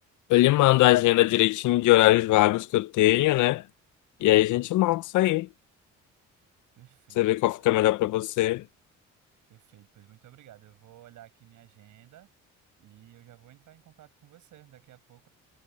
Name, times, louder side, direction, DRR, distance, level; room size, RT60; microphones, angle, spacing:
voice 1, 0.3-3.6 4.2-5.5 7.2-8.6, left 17 dB, 80° left, 0.6 m, -21 dB
voice 2, 6.8-7.6 9.5-12.3 12.8-15.3, right 13 dB, 80° right, 6.8 m, -54 dB
cardioid pair, 90°, 30 cm